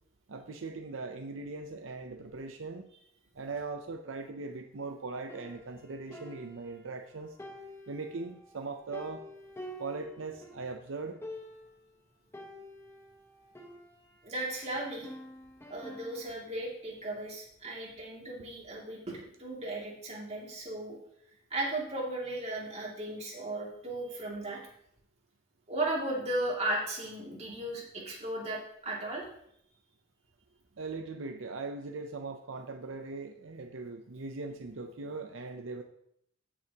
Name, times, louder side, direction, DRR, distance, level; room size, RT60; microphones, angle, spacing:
voice 1, 0.3-2.9 3.3-7.4 7.9-9.2 9.8-11.2 30.8-35.8, right 3 dB, 80° right, 5 dB, 0.7 m, -40 dB
sound 1, 5.3-7.0 7.4-10.7 10.9-11.0 11.2-11.8 12.3-14.3 14.7-16.4, left 1 dB, 15° left, 1.1 m, -48 dB
voice 2, 14.2-15.1 15.7-21.0 21.5-24.6 25.7-29.3, right 1 dB, 35° right, -3 dB, 2.6 m, -36 dB
15.0 x 6.3 x 2.9 m, 0.73 s
head